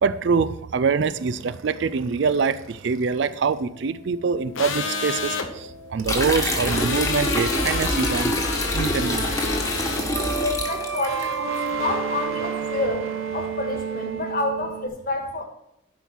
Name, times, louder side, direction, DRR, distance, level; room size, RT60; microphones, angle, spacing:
voice 1, 0.0-8.3 8.7-9.4, right 5 dB, 60° right, 15 dB, 0.4 m, -24 dB
sound 1, 1.0-8.2 8.5-14.9, right 6 dB, 80° right, 0.9 m, -33 dB
sound 2, 4.5-5.5 6.7-10.0, left 5 dB, 75° left, 1.0 m, -29 dB
sound 3, 6.0-11.3, left 1 dB, 15° left, 1.3 m, -26 dB
voice 2, 10.4-15.5, left 2 dB, 45° left, 4 dB, 1.5 m, -29 dB
11.0 x 5.5 x 4.5 m, 0.82 s
head